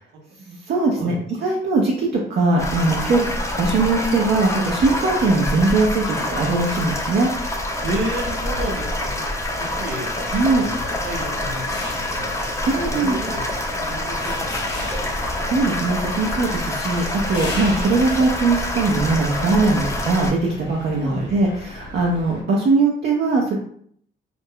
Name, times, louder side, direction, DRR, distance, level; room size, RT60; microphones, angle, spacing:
voice 1, 0.5-1.1 1.4-7.3 10.3-10.7 12.6-13.2 15.2-23.6, right 3 dB, 55° right, -3 dB, 0.6 m, -20 dB
sound 1, 2.6-20.3, left 1 dB, 15° left, 0.6 m, -26 dB
voice 2, 7.8-9.2 9.6-10.1 10.5-10.8 11.0-12.4 12.9-13.4 13.9-15.1 21.0-21.3, right 1 dB, 90° right, -1 dB, 0.8 m, -31 dB
sound 2, 10.2-22.4, left 2 dB, 60° left, 1.0 m, -37 dB
2.4 x 2.1 x 3.5 m, 0.62 s
cardioid pair, 90°, 20 cm